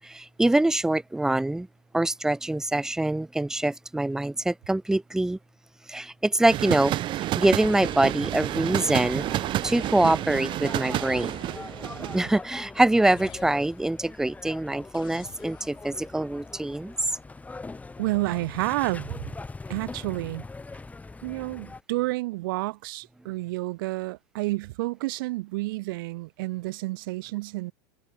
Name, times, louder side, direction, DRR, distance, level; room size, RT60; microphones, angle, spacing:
voice 1, 0.0-1.7 1.9-5.4 5.9-6.9 7.3-11.5 12.1-16.9, right 1 dB, 5° right, 0.7 m, -24 dB
sound 1, 6.5-12.3, right 14 dB, 45° right, 1.2 m, -29 dB
sound 2, 7.7-8.6 9.6-10.5 11.1-11.9 13.0-14.0 14.9-15.8, left 13 dB, 45° left, 7.0 m, -49 dB
sound 3, 8.9-21.8, left 3 dB, 10° left, 2.1 m, -42 dB
voice 2, 18.0-19.3 19.7-20.5 21.2-27.7, right 21 dB, 70° right, 2.1 m, -30 dB
hypercardioid pair, 100°, 12 cm